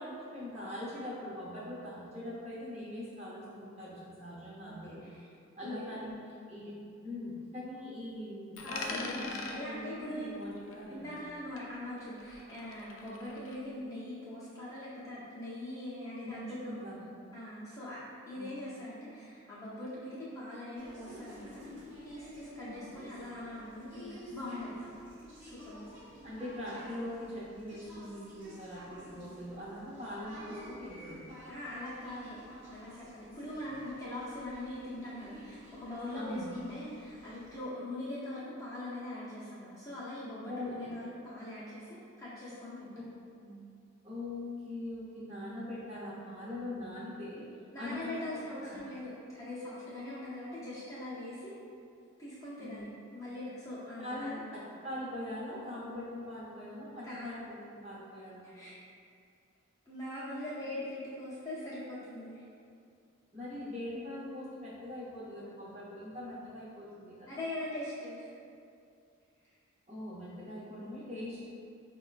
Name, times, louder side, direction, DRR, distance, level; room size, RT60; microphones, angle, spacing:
voice 1, 0.0-5.3 5.6-6.1 6.5-6.7 7.0-11.1 13.3-13.5 15.0-15.1 16.2-17.2 18.3-18.6 22.9-23.1 26.2-31.4 33.6-33.8 36.1-36.5 40.5-40.9 43.4-43.6 44.0-47.4 47.8-48.7 52.6-52.9 54.0-58.5 63.3-67.3 69.9-71.5, left 1 dB, 30° right, -8 dB, 0.8 m, -42 dB
voice 2, 4.7-5.2 5.6-5.9 8.6-10.3 10.9-16.7 17.3-18.0 18.3-21.6 22.0-25.0 25.4-25.9 31.5-32.4 32.7-42.9 47.7-51.6 52.2-52.9 53.1-54.4 57.0-57.3 58.5-58.7 59.9-62.4 67.3-68.3 69.4-69.5, left 1 dB, 15° left, -10 dB, 0.6 m, -42 dB
Coin (dropping), 8.6-11.3 11.6-13.6, left 3 dB, 75° left, 0.4 m, -44 dB
sound 1, 20.8-37.7, equal, 65° right, 0.8 m, -51 dB
4.8 x 2.2 x 2.4 m, 2.4 s
head